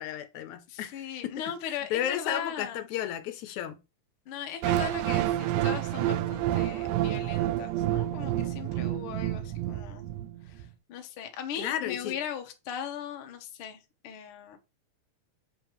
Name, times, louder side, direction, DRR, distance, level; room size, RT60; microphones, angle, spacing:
voice 1, 0.0-1.3 1.6-3.8 11.6-12.2, left 11 dB, 80° left, 2.0 m, -33 dB
voice 2, 0.7-2.9 4.3-10.0 10.4-14.6, left 8 dB, 60° left, 1.5 m, -39 dB
sound 1, 4.6-10.6, right 13 dB, 90° right, 2.0 m, -29 dB
7.4 x 5.2 x 3.0 m
omnidirectional pair, 3.4 m